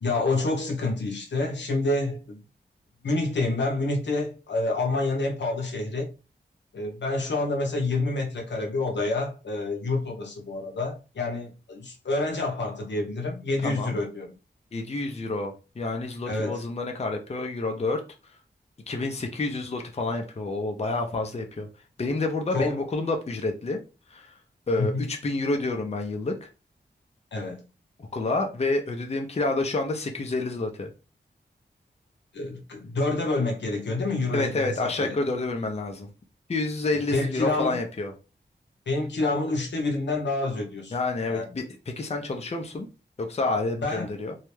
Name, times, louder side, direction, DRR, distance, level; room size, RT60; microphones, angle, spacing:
voice 1, 0.0-2.4 3.0-6.1 6.7-14.3 16.3-16.6 22.5-22.8 24.8-25.0 27.3-27.6 32.3-35.2 36.9-37.8 38.9-40.9 41.3-41.5 43.8-44.2, left 2 dB, 75° left, 0.7 m, -28 dB
voice 2, 13.6-14.0 14.7-18.1 18.9-21.7 22.0-23.8 24.1-24.3 24.7-26.5 28.1-30.9 34.3-36.1 36.5-38.1 40.9-42.9 43.2-44.4, left 2 dB, 35° left, 0.5 m, -29 dB
2.3 x 2.1 x 3.1 m
cardioid pair, 50°, 18 cm